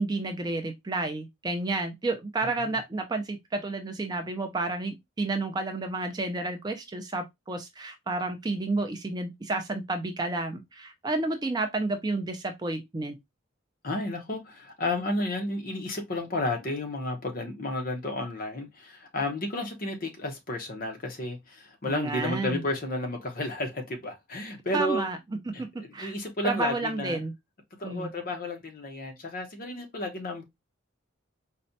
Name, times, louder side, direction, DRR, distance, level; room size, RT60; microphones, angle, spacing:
voice 1, 0.0-13.2 21.9-22.6 24.7-25.2 25.5-25.7 25.9-26.1 26.4-27.3 27.8-28.1, right 2 dB, 20° right, 0.4 m, -31 dB
voice 2, 2.4-2.8 13.8-25.1 25.5-27.2 27.8-30.4, left 1 dB, 45° left, 0.7 m, -32 dB
4.1 x 2.2 x 2.6 m
head